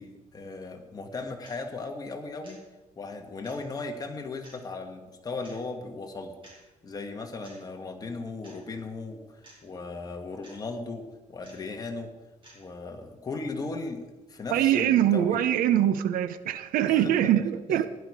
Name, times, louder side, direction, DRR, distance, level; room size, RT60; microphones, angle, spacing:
voice 1, 0.0-2.6 3.0-6.3 6.8-12.1 12.5-14.0 14.3-15.4 16.9-17.2 17.7-17.8, left 3 dB, 25° left, 1.5 m, -37 dB
sound 1, 1.4-1.6 2.4-2.6 3.4-3.6 4.4-4.6 5.4-5.6 6.4-6.6 7.4-7.6 8.4-8.6 9.4-9.6 10.4-10.6 11.4-11.6 12.4-12.6, right 1 dB, 40° right, 4.7 m, -52 dB
voice 2, 14.5-17.9, right 11 dB, 90° right, 0.7 m, -23 dB
15.5 x 11.0 x 4.8 m
cardioid pair, 150°, 14 cm